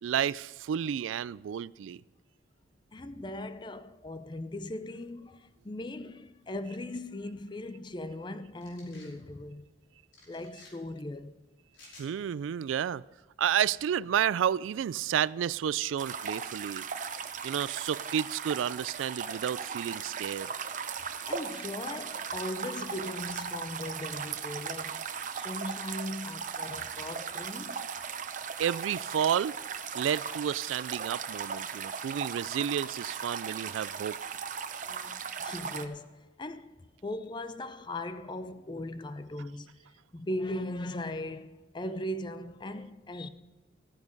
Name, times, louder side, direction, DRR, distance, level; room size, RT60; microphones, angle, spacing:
voice 1, 0.0-2.0 12.0-13.0 13.4-16.8 17.4-20.5 28.6-29.5 29.9-34.2, right 9 dB, 90° right, 0.3 m, -31 dB
voice 2, 2.9-9.6 10.3-11.3 21.3-25.1 25.3-27.9 34.8-36.7 37.0-39.7 40.1-43.3, left 1 dB, 25° left, 0.5 m, -39 dB
sound 1, 8.6-9.1 10.1-10.7 11.7-12.1, left 2 dB, 90° left, 5.2 m, -54 dB
sound 2, 16.0-35.9, right 6 dB, 40° right, 0.7 m, -37 dB
14.5 x 9.7 x 5.3 m
head